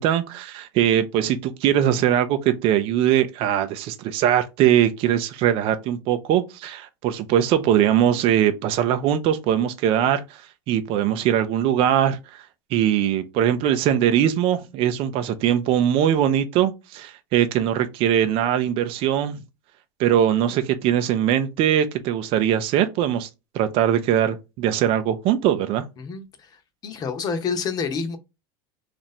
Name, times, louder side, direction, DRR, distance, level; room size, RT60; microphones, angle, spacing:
voice 1, 0.0-12.4 12.7-19.4 20.0-23.3 23.5-25.8, right 10 dB, 50° right, 0.5 m, -21 dB
voice 2, 26.0-26.5 26.8-28.2, left 5 dB, 30° left, 0.8 m, -28 dB
2.9 x 2.6 x 4.2 m
supercardioid pair, 135°, 12 cm